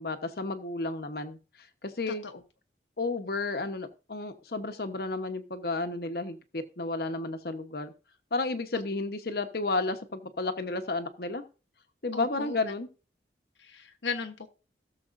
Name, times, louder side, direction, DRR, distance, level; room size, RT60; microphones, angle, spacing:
voice 1, 0.0-1.4 1.8-2.2 3.0-7.9 8.3-11.4 12.0-12.9, left 3 dB, 55° left, 8 dB, 1.0 m, -32 dB
voice 2, 2.1-2.4 12.1-12.6 13.6-14.5, left 4 dB, 85° left, 5 dB, 1.0 m, -36 dB
17.0 x 6.9 x 2.6 m, 0.34 s
head